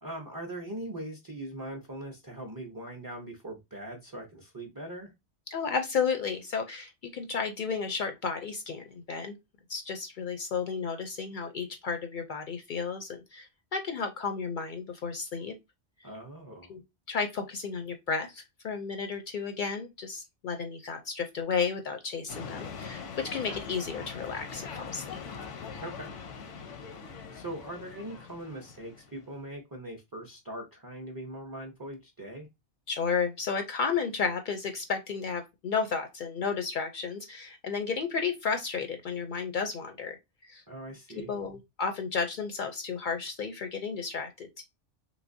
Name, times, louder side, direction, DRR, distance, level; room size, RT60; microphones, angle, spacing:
voice 1, 0.0-5.1 16.0-16.7 25.8-26.1 27.3-32.5 40.7-41.3, right 1 dB, 30° right, 0.4 m, -41 dB
voice 2, 5.5-9.3 9.7-15.5 16.7-16.8 17.1-25.2 32.9-40.2 40.5-40.6 41.1-44.6, left 5 dB, 60° left, 0.5 m, -33 dB
sound 1, 22.3-29.3, left 6 dB, 90° left, 1.0 m, -42 dB
3.1 x 3.1 x 2.5 m
omnidirectional pair, 1.2 m